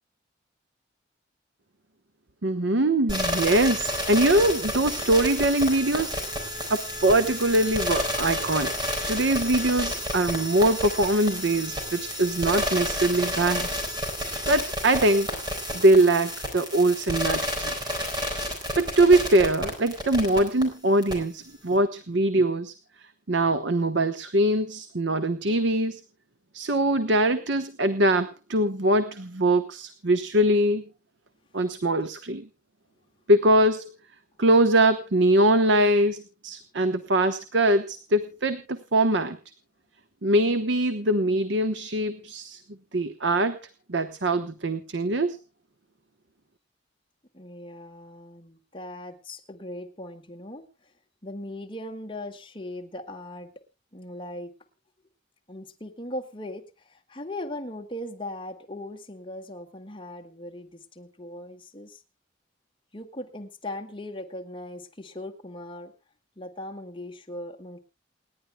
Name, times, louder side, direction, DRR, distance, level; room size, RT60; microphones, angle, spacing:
voice 1, 2.4-6.2 6.7-8.7 9.1-13.7 14.5-15.3 15.7-17.7 18.8-22.7 23.3-26.0 26.5-30.8 31.5-32.5 33.3-33.9 34.4-39.4 40.2-42.6 42.9-43.6 43.9-45.4, right 1 dB, 65° right, 10 dB, 1.0 m, -22 dB
sound 1, 3.1-20.6 21.0-21.1, equal, 20° right, 4.1 m, -30 dB
voice 2, 47.3-50.9 51.2-53.5 53.9-54.5 55.5-62.0 62.9-65.9 66.4-67.8, left 1 dB, 25° left, 2 dB, 1.9 m, -39 dB
28.5 x 10.5 x 2.2 m, 0.28 s
head